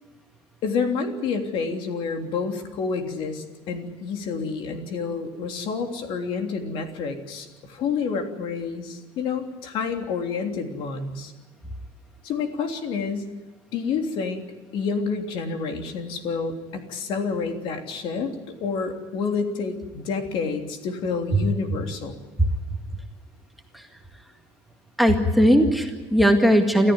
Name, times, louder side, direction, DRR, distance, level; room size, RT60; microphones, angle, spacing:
voice 1, 0.6-11.3 12.2-13.3 13.7-14.5 14.7-18.3 18.6-22.2, left 5 dB, 60° left, 4 dB, 3.3 m, -29 dB
voice 2, 25.0-26.9, equal, ahead, 4 dB, 2.0 m, -18 dB
28.5 x 14.0 x 9.7 m, 1.3 s
cardioid pair, 160°, 10 cm